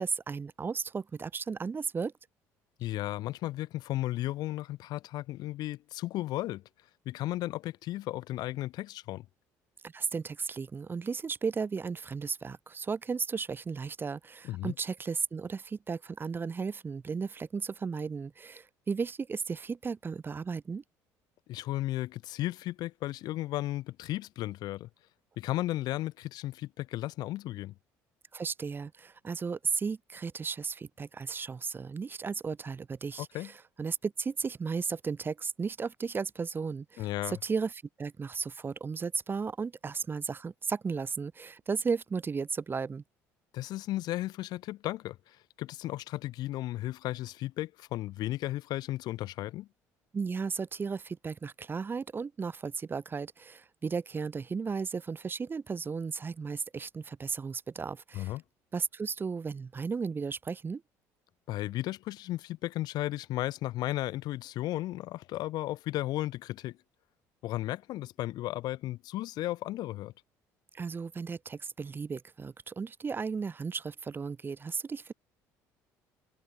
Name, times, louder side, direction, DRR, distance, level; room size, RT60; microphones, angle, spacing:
voice 1, 0.0-2.1 9.8-20.8 28.3-37.7 38.0-43.0 50.1-58.3 58.7-60.8 70.7-75.1, right 5 dB, 30° right, 1.1 m, -35 dB
voice 2, 2.8-6.6 7.1-9.3 14.4-14.7 21.5-24.9 25.4-27.7 33.2-33.5 37.0-37.4 43.5-49.7 58.1-58.4 61.5-66.8 67.4-70.1, left 15 dB, 65° left, 0.6 m, -34 dB
supercardioid pair, 85°, 7 cm